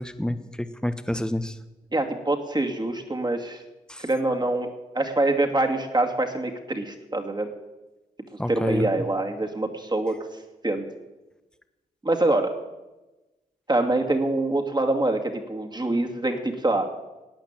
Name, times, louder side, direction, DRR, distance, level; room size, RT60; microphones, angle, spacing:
voice 1, 0.0-1.6 3.9-4.0 8.4-8.9, left 1 dB, 5° left, 11 dB, 1.2 m, -28 dB
voice 2, 1.9-3.6 4.0-4.7 4.9-7.5 8.5-10.2 10.6-10.8 12.0-12.5 13.7-16.9, right 2 dB, 25° right, 3 dB, 2.3 m, -25 dB
13.5 x 8.9 x 8.9 m, 1.1 s
cardioid pair, 50°, 17 cm